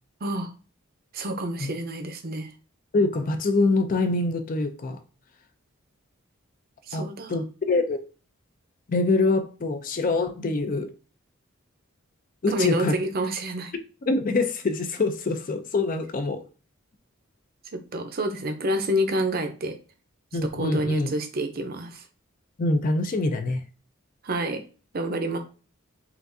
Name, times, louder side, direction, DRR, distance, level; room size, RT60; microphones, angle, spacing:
voice 1, 0.2-0.5 1.1-2.5 6.9-7.4 12.5-13.7 17.7-19.8 20.4-22.0 24.2-24.6 24.9-25.4, right 1 dB, 45° right, 0.6 m, -28 dB
voice 2, 2.9-5.0 6.9-8.0 8.9-10.9 12.4-12.9 14.1-16.4 20.3-21.1 22.6-23.6, left 3 dB, 40° left, 0.4 m, -24 dB
5.7 x 2.5 x 2.6 m
head